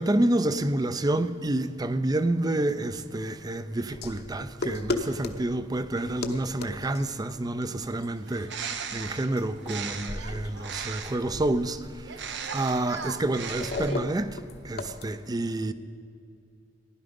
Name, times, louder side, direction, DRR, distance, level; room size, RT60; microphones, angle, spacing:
voice 1, 0.0-14.4 14.6-15.7, right 1 dB, 20° right, 0.5 m, -28 dB
sound 1, 3.9-15.0, left 2 dB, 60° left, 0.9 m, -38 dB
Bird, 8.2-11.3 12.0-14.2, right 6 dB, 70° right, 0.8 m, -37 dB
15.5 x 11.0 x 5.2 m
head